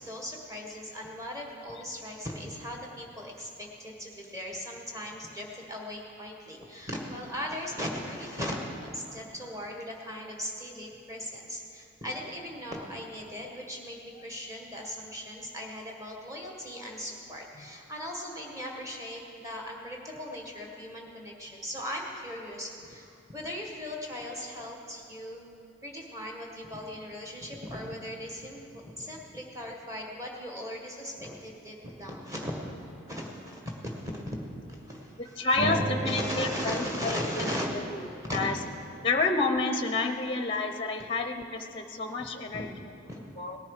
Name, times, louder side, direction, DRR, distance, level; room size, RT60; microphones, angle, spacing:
voice 1, 0.0-25.4 25.8-32.7 33.0-34.2 34.7-37.8 38.3-38.4 42.5-42.6 43.1-43.3, equal, 15° right, 0 dB, 1.6 m, -38 dB
voice 2, 35.2-35.8 36.0-37.9 38.3-38.5 39.0-42.7 43.4-43.6, left 3 dB, 25° left, 6 dB, 0.6 m, -29 dB
Acoustic guitar, 35.6-38.8, right 3 dB, 50° right, 0.6 m, -37 dB
18.0 x 10.5 x 4.9 m, 2.8 s
head